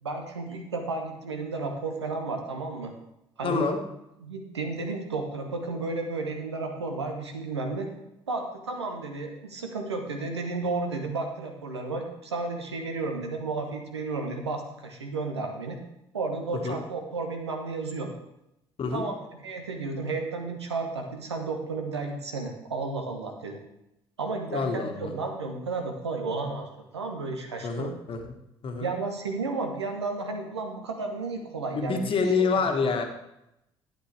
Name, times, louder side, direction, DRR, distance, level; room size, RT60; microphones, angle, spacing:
voice 1, 0.0-2.9 3.4-3.7 4.2-7.9 8.3-15.8 16.1-18.1 18.9-23.6 24.2-27.9 28.8-33.0, right 3 dB, 80° right, 4 dB, 1.2 m, -33 dB
voice 2, 3.4-3.8 16.6-16.8 18.8-19.0 24.5-25.1 27.6-28.3 28.6-28.9 31.7-33.0, left 4 dB, 40° left, 4 dB, 1.5 m, -27 dB
11.5 x 8.8 x 3.4 m, 0.86 s
figure-of-eight pair, 50°, 14 cm